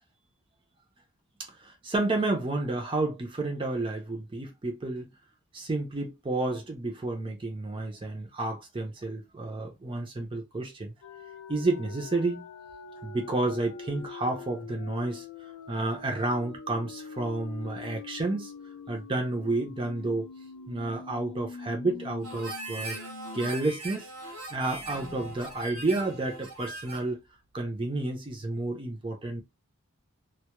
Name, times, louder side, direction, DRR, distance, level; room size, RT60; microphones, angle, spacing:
voice 1, 1.4-5.1 5.5-10.9 11.5-12.4 13.0-18.5 18.9-20.3 20.7-23.0 23.3-27.2 27.5-29.4, right 2 dB, 25° right, 0.4 m, -31 dB
sound 1, 11.0-23.5 23.8-23.9 24.3-27.0, left 5 dB, 85° left, 0.4 m, -44 dB
Harmonica, 22.2-27.1, right 2 dB, 75° right, 0.9 m, -40 dB
2.2 x 2.1 x 2.9 m
head